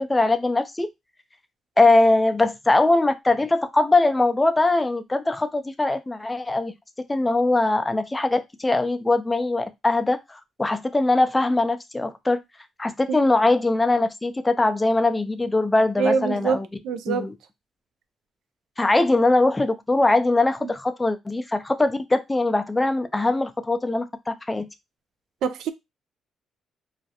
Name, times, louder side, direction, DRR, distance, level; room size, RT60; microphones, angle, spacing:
voice 1, 0.1-0.9 1.8-6.7 7.1-12.4 12.8-16.7 17.1-17.3 18.8-24.7, left 2 dB, 15° left, 0.4 m, -21 dB
voice 2, 16.0-17.3 20.6-20.7 25.4-25.7, right 5 dB, 80° right, 0.3 m, -25 dB
2.4 x 2.1 x 2.7 m
cardioid pair, 90°, 0 cm